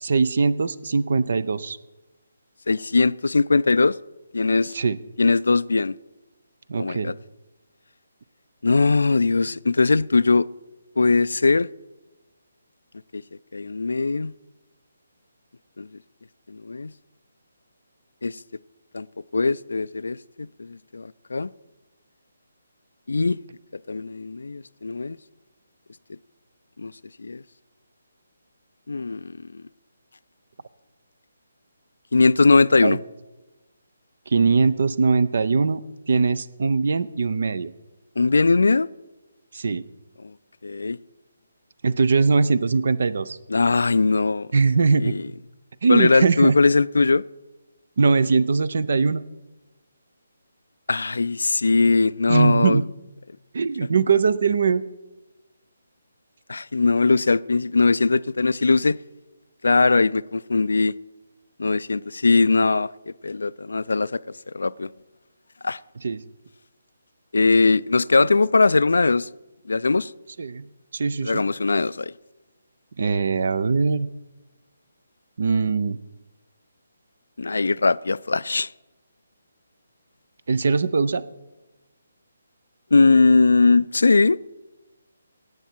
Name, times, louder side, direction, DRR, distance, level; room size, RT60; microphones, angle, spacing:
voice 1, 0.0-1.8 4.7-5.0 6.7-7.1 32.8-33.0 34.3-35.8 36.1-37.7 39.5-39.8 41.8-43.4 44.5-45.2 45.8-46.6 48.0-49.2 52.3-52.8 53.5-54.8 66.0-66.2 70.4-71.4 73.0-74.1 75.4-76.0 80.5-81.2, right 4 dB, 60° right, 0.6 m, -21 dB
voice 2, 2.7-4.0 4.3-4.7 5.2-5.9 6.8-7.1 8.6-10.5 11.0-11.7 13.1-13.2 13.5-14.3 15.8-15.9 16.5-16.9 18.2-18.4 18.9-19.1 19.3-21.5 23.1-23.4 23.9-25.2 26.8-26.9 27.2-27.4 28.9-29.4 32.1-33.0 38.2-38.9 40.2-40.3 40.6-41.0 43.5-44.5 45.0-45.2 45.9-47.2 50.9-52.8 56.5-59.0 59.6-60.9 61.6-64.2 64.5-64.9 65.6-65.8 67.3-69.3 69.7-70.1 71.2-72.1 77.4-78.7 82.9-84.4, left 3 dB, 70° left, 0.3 m, -20 dB
18.0 x 8.1 x 4.5 m
figure-of-eight pair, 145°, 0 cm